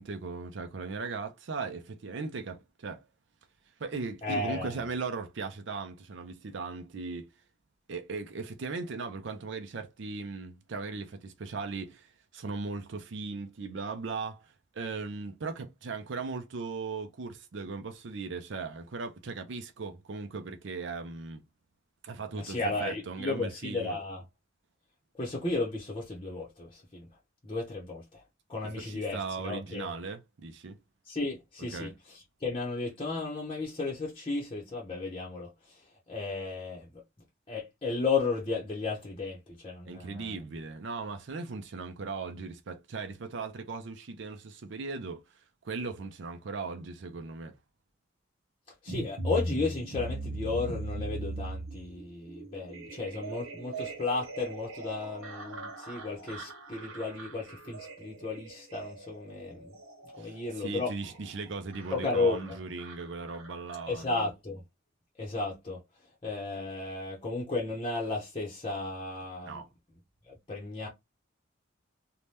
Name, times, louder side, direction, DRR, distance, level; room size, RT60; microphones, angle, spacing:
voice 1, 0.0-3.1 3.8-7.3 7.9-21.4 22.0-24.0 28.6-30.8 31.7-31.9 39.8-45.2 45.6-47.6 60.2-64.0 69.4-69.7, right 4 dB, 60° right, 0.5 m, -38 dB
voice 2, 4.2-4.8 22.3-24.2 25.2-27.1 27.4-28.0 28.5-29.9 31.1-35.5 36.1-36.9 37.5-40.3 48.8-59.7 60.2-60.9 61.9-62.4 63.9-64.6 65.2-65.8 66.2-69.6 70.3-70.9, left 3 dB, 25° left, 0.7 m, -34 dB
sound 1, 48.9-64.1, right 2 dB, 80° right, 1.1 m, -40 dB
2.7 x 2.2 x 3.3 m
head